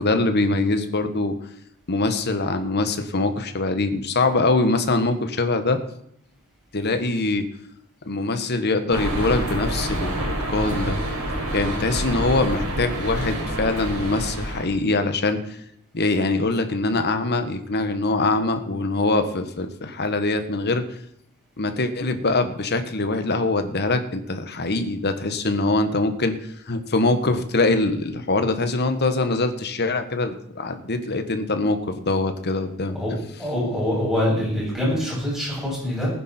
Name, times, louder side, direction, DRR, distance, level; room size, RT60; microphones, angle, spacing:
voice 1, 0.0-1.4 1.9-5.8 6.7-7.4 8.1-11.0 11.5-15.4 15.9-20.8 21.6-26.4 26.7-33.0, left 2 dB, 50° left, 8 dB, 1.4 m, -23 dB
sound 1, 8.9-14.6, right 1 dB, 80° right, 4.9 m, -27 dB
voice 2, 32.9-36.1, left 1 dB, ahead, -6 dB, 7.5 m, -25 dB
19.0 x 10.0 x 4.4 m, 0.74 s
head